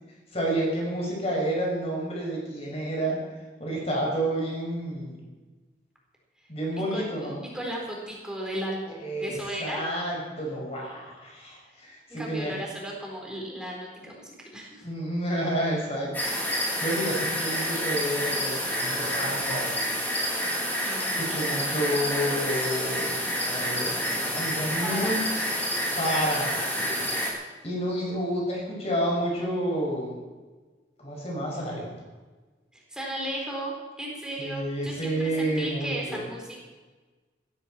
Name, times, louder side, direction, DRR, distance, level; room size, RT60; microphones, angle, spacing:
voice 1, 0.3-3.2 3.6-5.2 6.5-7.4 9.0-12.6 14.8-16.3 16.8-19.7 21.2-25.2 26.0-27.1 27.6-30.1 31.0-31.9 34.4-36.2, right 1 dB, 35° left, -2 dB, 6.2 m, -30 dB
voice 2, 6.7-9.9 12.1-14.8 20.8-21.8 24.8-25.3 32.7-36.6, right 1 dB, 5° right, -2 dB, 4.2 m, -36 dB
sound 1, 16.1-27.3, equal, 10° left, 3.5 m, -28 dB
16.0 x 15.0 x 4.5 m, 1.3 s
head